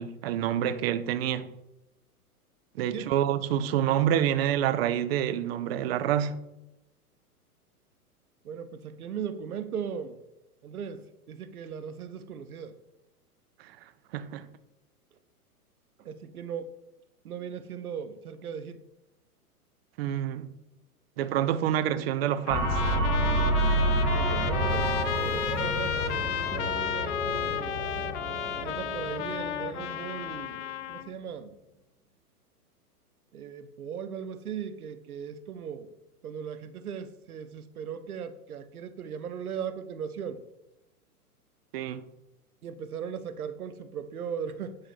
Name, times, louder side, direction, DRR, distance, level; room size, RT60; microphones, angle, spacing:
voice 1, 0.0-1.5 2.8-6.4 13.6-13.7 14.1-14.5 20.0-20.5 21.2-22.8 41.7-42.0, right 10 dB, 40° right, 0.7 m, -27 dB
voice 2, 2.8-3.1 8.4-10.2 10.6-12.7 16.0-16.7 17.2-18.8 24.1-27.8 28.6-30.6 30.9-31.5 33.3-35.9 36.2-40.4 42.6-44.8, right 7 dB, 70° right, 1.0 m, -38 dB
Trumpet, 22.5-31.1, left 10 dB, 50° left, 0.7 m, -33 dB
sound 1, 22.5-30.5, right 1 dB, 5° right, 2.2 m, -29 dB
9.5 x 3.9 x 6.1 m
figure-of-eight pair, 110°, 46 cm